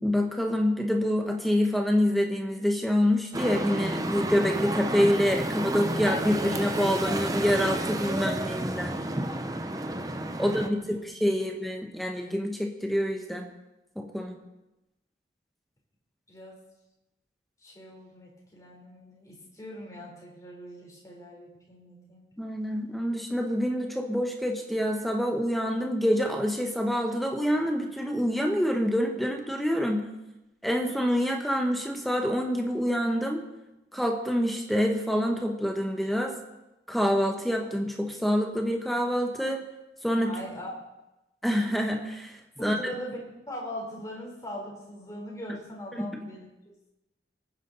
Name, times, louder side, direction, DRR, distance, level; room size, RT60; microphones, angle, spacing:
voice 1, 0.0-9.0 10.4-13.4 14.0-14.4 22.4-30.0 30.6-33.4 33.9-36.3 36.9-39.6 40.0-40.3 41.4-42.3 42.6-42.8 45.9-46.3, equal, ahead, 3 dB, 1.3 m, -26 dB
sound 1, 3.3-10.7, right 1 dB, 20° right, 0.9 m, -31 dB
voice 2, 10.4-10.8 11.6-11.8 16.3-16.6 17.6-22.3 40.2-40.7 42.6-46.5, equal, 20° left, -2 dB, 3.8 m, -41 dB
24.5 x 9.7 x 4.1 m, 0.95 s
head